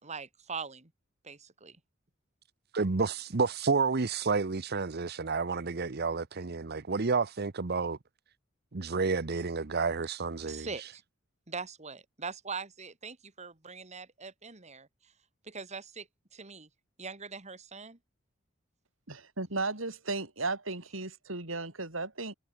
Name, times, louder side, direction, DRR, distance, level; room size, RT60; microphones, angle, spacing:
voice 1, 0.0-0.9 1.2-1.8 10.4-11.0 11.5-15.1 15.4-16.7 17.0-18.0, right 5 dB, 35° right, 2.6 m, -42 dB
voice 2, 2.7-8.0 8.7-10.7, right 4 dB, 55° right, 0.9 m, -30 dB
voice 3, 19.1-22.3, right 3 dB, 85° right, 5.1 m, -35 dB
head